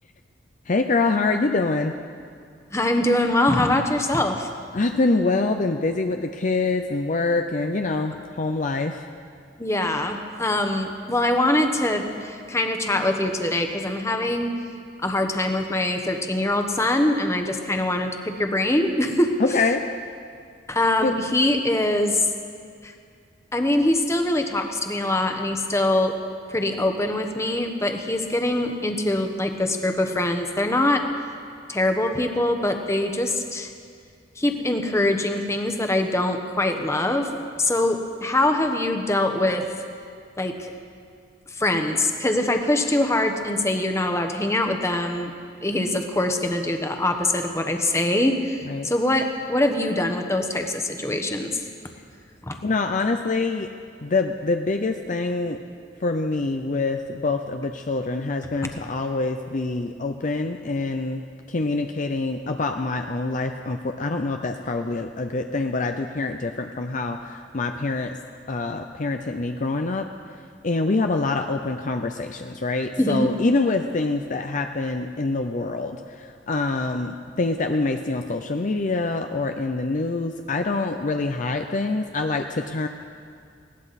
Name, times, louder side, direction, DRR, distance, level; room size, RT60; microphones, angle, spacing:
voice 1, 0.7-1.9 4.7-9.1 19.4-19.9 21.0-21.1 48.6-48.9 52.6-53.7 54.0-55.6 56.0-68.2 68.5-70.1 70.6-82.9, left 3 dB, 45° left, 5 dB, 0.6 m, -25 dB
voice 2, 2.7-4.5 9.6-14.5 15.0-19.4 20.7-22.2 22.8-22.9 23.5-26.1 26.5-31.0 31.7-33.7 34.4-37.3 37.6-39.7 40.4-40.7 41.5-45.3 45.6-51.5 52.4-52.6 73.0-73.3, left 1 dB, 15° left, 4 dB, 1.1 m, -23 dB
20.0 x 17.0 x 4.2 m, 2.2 s
head